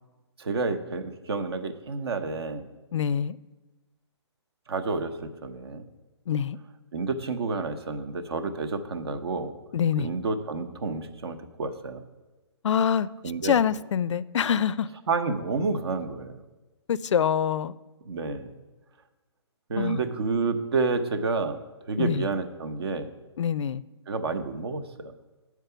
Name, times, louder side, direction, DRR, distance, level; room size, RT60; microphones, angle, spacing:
voice 1, 0.4-2.6 4.7-5.8 6.9-9.5 10.0-12.0 13.2-13.6 15.1-16.4 18.0-18.5 19.7-21.6 21.9-23.1 24.1-25.1, right 4 dB, 60° right, 9 dB, 0.8 m, -29 dB
voice 2, 2.9-3.4 6.3-6.6 9.7-10.1 12.6-13.1 13.4-14.9 16.9-17.7 19.8-20.0 22.0-22.2 23.4-23.8, left 8 dB, 85° left, 19 dB, 0.4 m, -25 dB
9.0 x 4.7 x 6.8 m, 1.2 s
hypercardioid pair, 170°, 15 cm